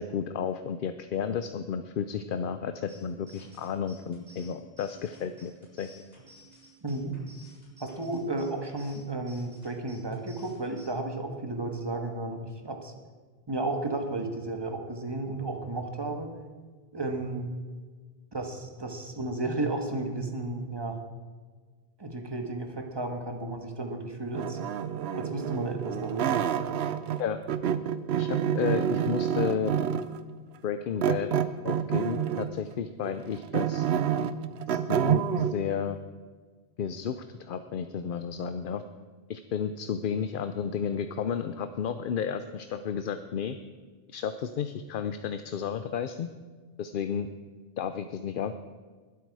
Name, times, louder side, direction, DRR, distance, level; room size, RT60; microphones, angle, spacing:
voice 1, 0.0-5.5 5.8-5.9 27.2-27.4 28.1-29.7 30.6-31.3 31.6-33.9 34.7-36.0 36.8-38.8 39.3-43.6 44.1-46.3 46.8-47.3 47.8-48.6, left 7 dB, 60° left, 10 dB, 0.7 m, -32 dB
sound 1, 2.9-10.9, right 1 dB, 40° right, 4.7 m, -55 dB
voice 2, 6.8-7.1 7.8-12.9 13.5-16.3 16.9-17.5 18.3-21.0 22.0-24.6 25.1-26.4, right 2 dB, 25° right, 4 dB, 1.4 m, -33 dB
sound 2, 24.3-27.2 27.5-30.2 31.0-32.6 33.0-35.5, right 9 dB, 80° right, 0.9 m, -28 dB
20.5 x 8.3 x 4.8 m, 1.4 s
omnidirectional pair, 1.0 m